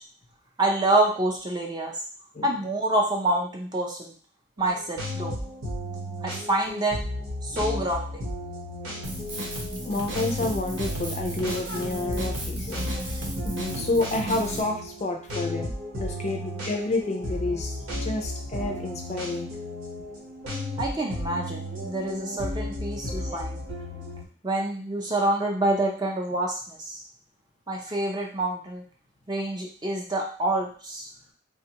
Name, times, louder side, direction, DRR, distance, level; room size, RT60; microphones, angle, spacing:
voice 1, 0.6-1.9 2.4-4.1 4.6-5.3 6.2-7.0 7.5-8.1 20.8-23.6 24.4-27.0 27.7-28.8 29.3-31.0, right 1 dB, 20° right, -1 dB, 0.5 m, -27 dB
sound 1, 4.6-24.2, left 1 dB, 85° right, 1.1 m, -34 dB
Drum kit, 9.0-14.6, right 1 dB, 60° right, 0.8 m, -34 dB
voice 2, 9.8-12.9 13.4-19.5 22.1-22.2, left 2 dB, 35° left, 3 dB, 0.4 m, -30 dB
3.5 x 2.2 x 2.9 m, 0.43 s
head